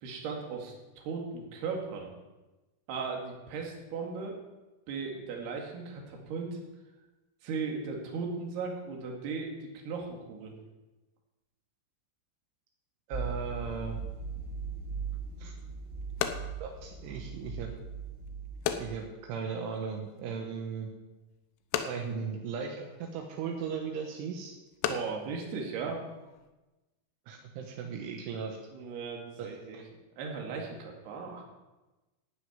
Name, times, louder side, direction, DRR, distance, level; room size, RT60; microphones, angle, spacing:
voice 1, 0.0-2.1 2.9-4.4 4.9-6.6 7.4-10.5 24.9-26.1 28.7-29.8 30.2-31.4, right 5 dB, 60° right, 1 dB, 3.8 m, -37 dB
sound 1, 13.1-19.0, right 5 dB, 20° right, 1.9 m, -39 dB
voice 2, 13.1-14.0 15.4-15.5 16.6-17.7 18.8-20.9 21.9-24.6 27.3-28.6 29.4-29.5 29.7-29.8, right 6 dB, 80° right, 2 dB, 3.6 m, -37 dB
sound 2, 15.1-26.5, left 9 dB, 80° left, 3.1 m, -40 dB
12.5 x 6.5 x 9.4 m, 1.1 s
omnidirectional pair, 5.5 m